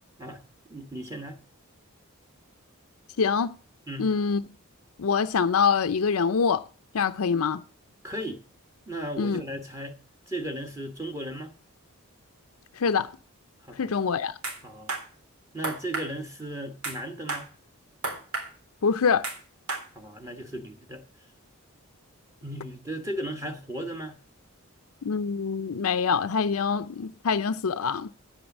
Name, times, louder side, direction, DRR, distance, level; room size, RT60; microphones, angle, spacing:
voice 1, 0.7-1.4 3.9-4.1 8.0-8.4 8.9-10.0 10.3-11.5 13.6-14.0 14.6-14.9 15.5-17.5 19.9-21.0 22.4-24.2, right 1 dB, 15° right, 1.2 m, -36 dB
voice 2, 3.2-3.6 4.0-4.4 5.0-6.6 6.9-7.6 9.2-9.4 12.8-13.1 13.8-14.3 18.8-19.3 25.0-28.1, left 5 dB, 80° left, 0.5 m, -25 dB
sound 1, 14.4-14.6 14.9-15.0 15.6-16.1 16.8-17.0 17.3-17.5 18.0-18.5 19.2-19.4 19.7-19.8, right 3 dB, 90° right, 3.6 m, -31 dB
9.4 x 8.7 x 7.2 m
head